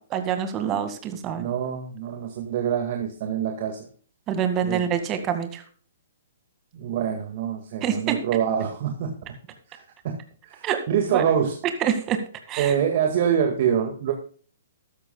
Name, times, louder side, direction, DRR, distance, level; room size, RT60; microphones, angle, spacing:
voice 1, 0.1-1.5 4.3-5.6 7.8-8.2 10.6-10.8 11.1-11.2 11.8-12.2 12.5-12.7, right 8 dB, 25° right, 8 dB, 1.9 m, -26 dB
voice 2, 1.3-3.9 4.6-4.9 6.7-9.1 9.7-11.6 12.6-14.1, right 8 dB, 50° right, 4 dB, 1.9 m, -25 dB
14.0 x 12.5 x 2.3 m, 0.43 s
figure-of-eight pair, 125°, 0 cm